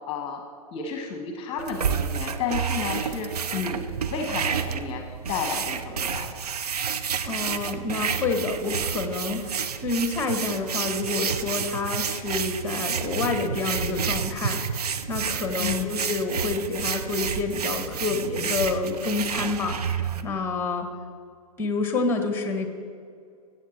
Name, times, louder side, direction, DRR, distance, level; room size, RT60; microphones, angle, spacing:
voice 1, 0.1-0.4 0.7-6.3 15.6-16.0, left 6 dB, 30° left, 4 dB, 1.2 m, -32 dB
sound 1, 1.6-20.2, right 7 dB, 75° right, 0.7 m, -30 dB
voice 2, 7.2-14.7 15.1-20.9 21.6-22.7, left 3 dB, 10° left, 5 dB, 1.4 m, -28 dB
14.0 x 7.9 x 4.4 m, 2.3 s
figure-of-eight pair, 110°, 20 cm